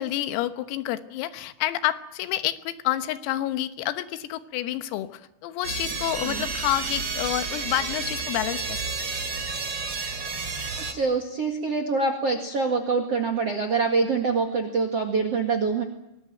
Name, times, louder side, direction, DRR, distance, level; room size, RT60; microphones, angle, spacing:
voice 1, 0.0-9.1, left 14 dB, 90° left, 11 dB, 3.9 m, -29 dB
sound 1, 5.6-10.9, right 4 dB, 30° right, 2.9 m, -31 dB
voice 2, 10.7-15.8, right 4 dB, 60° right, 7 dB, 1.6 m, -25 dB
24.5 x 19.5 x 9.2 m, 0.89 s
omnidirectional pair, 6.0 m